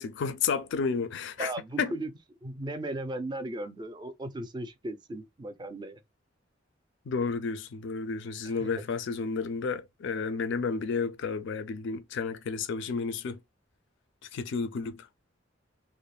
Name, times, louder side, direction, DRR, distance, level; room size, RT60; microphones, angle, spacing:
voice 1, 0.0-1.5 1.8-2.0 7.1-13.4 14.3-15.1, left 5 dB, 65° left, 0.4 m, -31 dB
voice 2, 1.4-2.1 2.4-6.0 8.6-8.7, right 1 dB, 25° right, 0.4 m, -36 dB
3.0 x 2.1 x 2.2 m
head